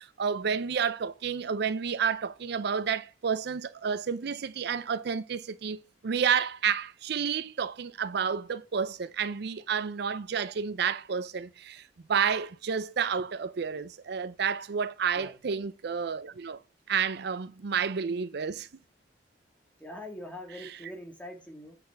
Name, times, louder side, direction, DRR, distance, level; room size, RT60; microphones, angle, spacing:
voice 1, 0.0-16.6 16.9-18.7, right 6 dB, 65° right, 0.5 m, -30 dB
voice 2, 19.8-21.8, left 1 dB, 5° left, 2.0 m, -43 dB
8.8 x 4.1 x 6.9 m
head